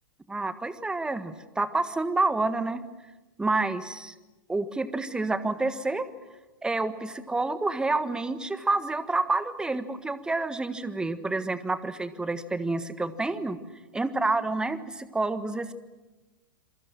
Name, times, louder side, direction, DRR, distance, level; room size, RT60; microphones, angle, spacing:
voice 1, 0.3-2.8 3.4-4.1 4.5-6.1 6.6-13.6 13.9-15.7, right 3 dB, 5° right, 13 dB, 1.5 m, -28 dB
27.5 x 23.5 x 7.7 m, 1.1 s
figure-of-eight pair, 100°, 11 cm